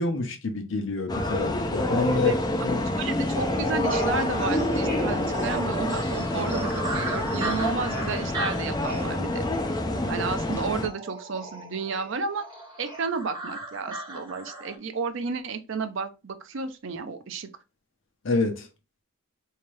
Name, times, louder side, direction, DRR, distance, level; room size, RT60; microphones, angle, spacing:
voice 1, 0.0-2.4 2.6-2.8 18.2-18.7, left 3 dB, 60° left, 0.7 m, -27 dB
sound 1, 1.1-10.9, left 1 dB, 20° left, 0.4 m, -27 dB
voice 2, 2.9-9.4 10.1-12.4 12.8-17.5, right 4 dB, 60° right, 0.5 m, -32 dB
sound 2, 3.3-14.8, right 1 dB, 20° right, 1.6 m, -36 dB
3.5 x 2.8 x 3.2 m
head